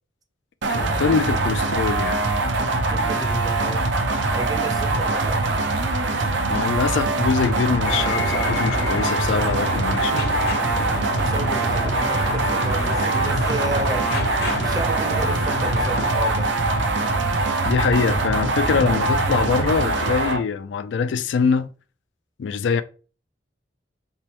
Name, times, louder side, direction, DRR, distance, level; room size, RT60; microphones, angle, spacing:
sound 1, 0.6-20.4, right 2 dB, 80° right, 0.6 m, -23 dB
voice 1, 0.7-2.2 6.5-10.3 17.6-21.7 22.4-22.8, left 5 dB, 80° left, 0.4 m, -23 dB
voice 2, 2.9-3.9 4.3-5.4 11.2-14.1 14.6-16.5, right 2 dB, 20° right, 0.5 m, -31 dB
sound 2, 7.8-16.1, left 3 dB, 60° left, 0.8 m, -31 dB
4.1 x 3.4 x 2.9 m
head